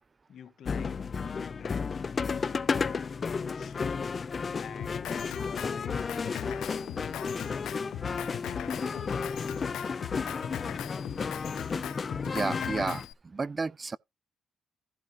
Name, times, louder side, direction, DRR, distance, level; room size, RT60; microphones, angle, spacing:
voice 1, 0.3-1.9 2.2-3.0 3.4-4.1 4.6-6.0 6.6-8.0 8.4-9.2, left 9 dB, 65° left, 1.6 m, -48 dB
sound 1, 0.6-13.1, left 5 dB, 40° left, 0.7 m, -33 dB
Drum kit, 4.8-13.1, left 12 dB, 80° left, 0.6 m, -40 dB
voice 2, 12.2-14.0, right 4 dB, 30° right, 0.4 m, -32 dB
15.0 x 5.3 x 3.0 m
cardioid pair, 90°, 0 cm